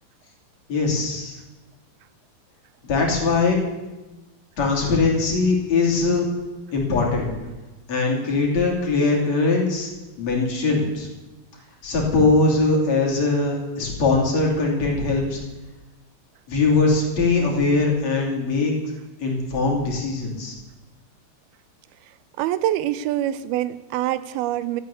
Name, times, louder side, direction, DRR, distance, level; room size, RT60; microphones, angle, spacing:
voice 1, 0.7-1.4 2.8-3.6 4.6-6.3 6.7-7.3 7.9-9.9 10.2-11.1 11.8-15.4 16.5-18.7 19.2-20.5, left 3 dB, 45° left, -1 dB, 3.9 m, -21 dB
voice 2, 22.4-24.8, right 13 dB, 85° right, 15 dB, 2.5 m, -25 dB
13.5 x 9.0 x 8.3 m, 1.1 s
omnidirectional pair, 4.3 m